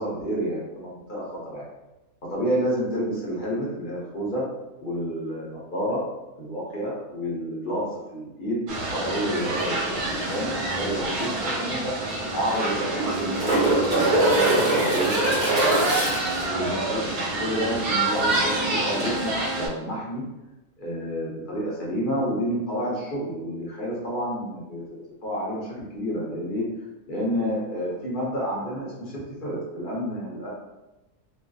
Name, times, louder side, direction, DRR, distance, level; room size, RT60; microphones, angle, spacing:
voice 1, 0.0-1.7 2.3-4.4 4.8-6.0 6.4-11.9 12.3-15.1 15.4-16.1 16.5-17.0 17.4-20.2 20.8-26.6 27.1-30.5, equal, 45° left, -6 dB, 0.7 m, -30 dB
sound 1, 8.7-19.7, right 2 dB, 75° right, 1.1 m, -27 dB
sound 2, 11.2-11.3 11.6-11.7 12.7-16.4 19.0-19.1, right 1 dB, 40° right, 1.1 m, -23 dB
2.6 x 2.4 x 2.3 m, 1.0 s
omnidirectional pair, 1.6 m